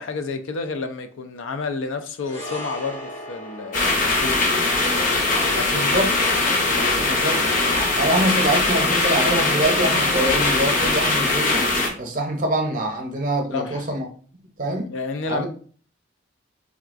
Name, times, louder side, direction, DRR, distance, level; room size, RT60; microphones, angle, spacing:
voice 1, 0.0-4.4 5.4-6.1 6.7-7.2 13.5-13.8 14.8-15.5, left 4 dB, 90° left, 0.4 m, -30 dB
sound 1, 2.2-10.7 10.9-11.1, equal, 70° left, 1.4 m, -41 dB
sound 2, 3.7-11.9, left 2 dB, 45° left, 0.6 m, -21 dB
voice 2, 5.5-6.1 7.0-7.4 8.0-11.7 12.0-14.1 14.6-14.9 15.3-15.5, right 1 dB, 45° right, 0.6 m, -24 dB
Wind instrument woodwind instrument, 8.0-11.3, right 2 dB, 5° left, 0.3 m, -38 dB
3.5 x 2.3 x 2.4 m
head